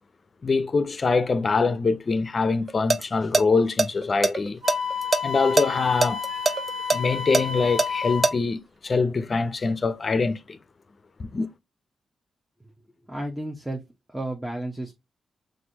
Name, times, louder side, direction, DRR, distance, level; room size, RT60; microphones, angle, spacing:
voice 1, 0.4-4.6 5.2-6.4 6.9-10.6 11.2-11.5, left 4 dB, 45° left, 0.6 m, -24 dB
sound 1, 2.7-3.0 3.3-3.4 3.8-5.2 5.6-5.7 6.0-8.3, right 3 dB, 30° right, 0.5 m, -21 dB
Wind instrument woodwind instrument, 4.6-8.4, left 6 dB, 45° right, 1.2 m, -30 dB
voice 2, 13.1-13.8 14.1-14.9, right 1 dB, 5° right, 1.0 m, -32 dB
6.0 x 2.6 x 2.8 m
cardioid pair, 80°, 0 cm